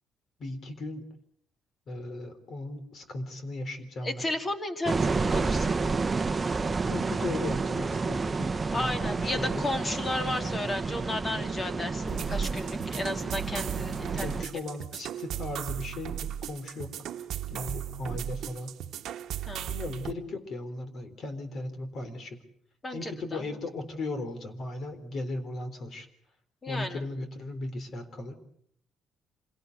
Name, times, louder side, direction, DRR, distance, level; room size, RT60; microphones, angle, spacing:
voice 1, 0.4-1.1 1.9-4.2 6.9-8.9 9.2-9.6 14.2-17.2 17.5-18.8 19.7-22.4 22.9-26.1 26.7-28.3, left 2 dB, 50° left, 10 dB, 3.8 m, -37 dB
voice 2, 4.0-5.7 8.7-14.4 17.5-17.7 19.5-19.8 22.8-23.6 26.6-27.0, left 2 dB, 25° left, 6 dB, 2.7 m, -34 dB
sound 1, 4.9-14.4, right 4 dB, 20° right, 1.0 m, -30 dB
sound 2, 12.1-20.1, right 11 dB, 70° right, 1.1 m, -36 dB
26.5 x 17.5 x 8.1 m, 0.71 s
cardioid pair, 115°, 0 cm